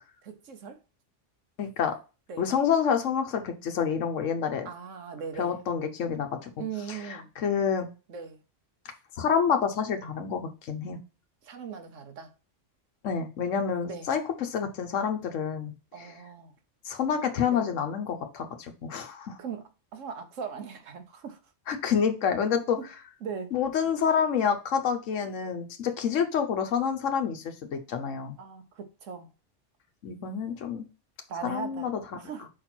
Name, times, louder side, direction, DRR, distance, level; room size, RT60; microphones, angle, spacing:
voice 1, 0.2-0.8 2.3-2.5 4.6-5.6 6.6-7.3 8.1-8.4 11.4-12.3 13.8-14.1 15.9-16.5 17.5-17.6 19.4-21.4 23.2-23.5 28.4-29.3 31.3-32.5, right 6 dB, 85° right, 1.3 m, -39 dB
voice 2, 1.6-2.0 2.4-4.7 5.4-6.5 6.9-7.9 9.2-11.0 13.0-16.1 16.8-19.4 21.7-22.8 23.5-28.4 30.0-30.8 31.4-32.0, left 7 dB, 85° left, 1.2 m, -28 dB
5.2 x 4.2 x 4.3 m
omnidirectional pair, 1.3 m